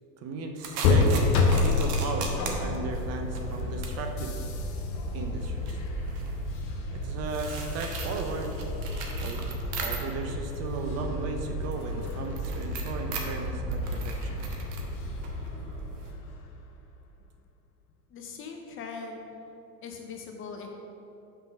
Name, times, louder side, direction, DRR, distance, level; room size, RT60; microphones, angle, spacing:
voice 1, 0.2-1.3 1.6-4.4 5.1-5.8 6.9-8.5 9.2-9.5 9.8-14.4, right 4 dB, 35° right, 4 dB, 0.6 m, -36 dB
sound 1, 0.6-10.4 10.7-16.1, right 4 dB, 55° right, 1.1 m, -40 dB
sound 2, 0.8-16.5, left 2 dB, 55° left, 1.0 m, -30 dB
voice 2, 18.1-19.3 19.8-20.7, left 5 dB, 25° left, 2 dB, 0.5 m, -40 dB
5.7 x 3.8 x 5.8 m, 3.0 s
hypercardioid pair, 95°, 48 cm